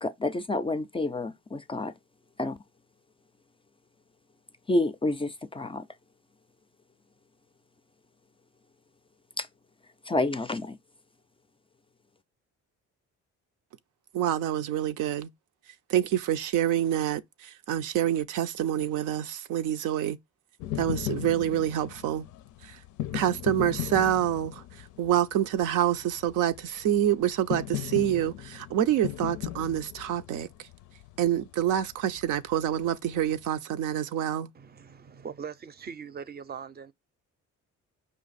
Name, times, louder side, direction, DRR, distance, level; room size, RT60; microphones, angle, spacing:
voice 1, 0.0-1.9 2.4-2.6 4.7-5.9 9.4-9.5 10.1-10.8, left 2 dB, 20° left, 0.3 m, -29 dB
voice 2, 14.1-15.3 15.9-20.2 20.8-22.2 23.1-24.6 25.0-30.5 31.2-34.5, right 11 dB, 90° right, 0.6 m, -27 dB
sound 1, 20.6-33.5, left 13 dB, 85° left, 0.5 m, -38 dB
voice 3, 34.6-36.9, right 6 dB, 35° right, 0.5 m, -41 dB
5.2 x 2.5 x 4.0 m
cardioid pair, 90°, 30 cm